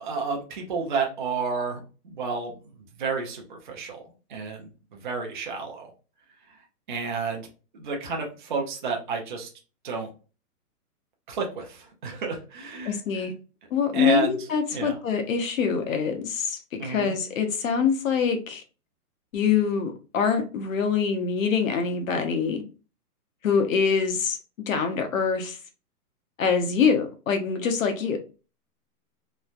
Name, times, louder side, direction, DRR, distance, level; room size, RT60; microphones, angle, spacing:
voice 1, 0.0-2.5 3.0-4.0 4.3-5.9 6.9-7.5 7.7-9.5 9.8-10.1 11.3-13.2 13.9-14.4 14.7-14.9 16.8-17.1, right 5 dB, 35° right, 0.4 m, -31 dB
voice 2, 12.9-13.3 13.7-18.6 19.3-22.6 23.4-24.4 24.7-25.6 26.4-28.2, left 6 dB, 60° left, 0.7 m, -24 dB
3.1 x 2.1 x 2.4 m
hypercardioid pair, 165°, 46 cm